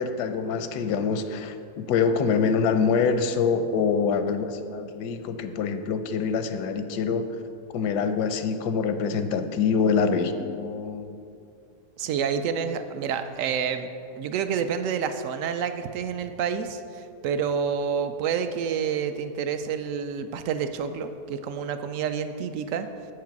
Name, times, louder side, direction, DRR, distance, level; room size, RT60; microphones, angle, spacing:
voice 1, 0.0-7.3 7.7-11.2, left 5 dB, 90° left, 9 dB, 1.2 m, -25 dB
voice 2, 12.0-13.9 14.2-22.9, right 7 dB, 70° right, 9 dB, 0.8 m, -28 dB
8.1 x 6.6 x 5.8 m, 2.5 s
omnidirectional pair, 1.7 m